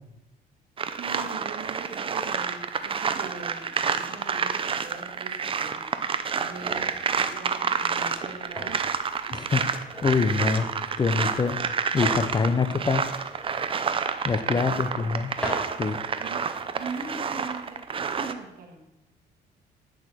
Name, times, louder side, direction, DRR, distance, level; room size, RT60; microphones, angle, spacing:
sound 1, 0.8-18.3, right 6 dB, 30° right, 0.7 m, -29 dB
voice 1, 1.0-5.9 6.3-8.9 9.2-9.4 14.3-15.0 16.2-16.5 16.7-18.9, right 4 dB, 60° right, 3 dB, 2.1 m, -41 dB
sound 2, 6.5-18.4, equal, 5° left, 4.1 m, -42 dB
voice 2, 10.0-10.7 11.0-11.6 11.9-13.0 14.2-15.3 15.8-16.0, left 5 dB, 25° left, 10 dB, 0.8 m, -24 dB
10.0 x 6.9 x 6.3 m, 0.94 s
cardioid pair, 110°, 17 cm